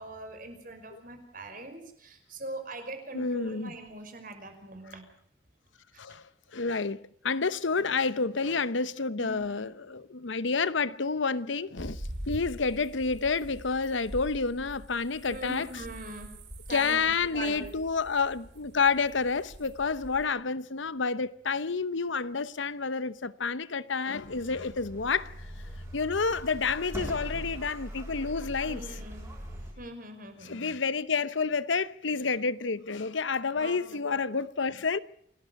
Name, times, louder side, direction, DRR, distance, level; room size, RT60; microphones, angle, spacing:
voice 1, 0.0-5.1 9.2-9.7 15.3-16.4 16.7-17.7 28.6-29.3 29.8-30.8 33.5-34.2, right 1 dB, 45° right, 5.4 m, -42 dB
voice 2, 3.1-3.7 6.0-6.2 6.5-12.0 12.3-15.7 16.7-25.3 25.9-28.8 30.5-35.0, left 4 dB, 70° left, 0.9 m, -29 dB
sound 1, 11.8-20.3, equal, 60° right, 5.5 m, -44 dB
sound 2, 24.2-29.7, equal, 15° right, 7.6 m, -41 dB
28.0 x 19.0 x 5.9 m
head